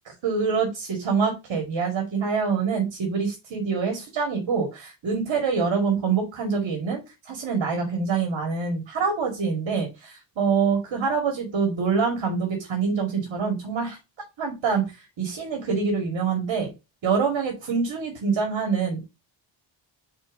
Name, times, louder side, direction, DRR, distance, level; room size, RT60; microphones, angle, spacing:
voice 1, 0.2-7.0 7.3-14.0 14.4-16.7 17.0-19.0, right 5 dB, 70° right, 2 dB, 2.2 m, -25 dB
4.6 x 4.5 x 4.8 m, 0.25 s
wide cardioid pair, 135°, 46 cm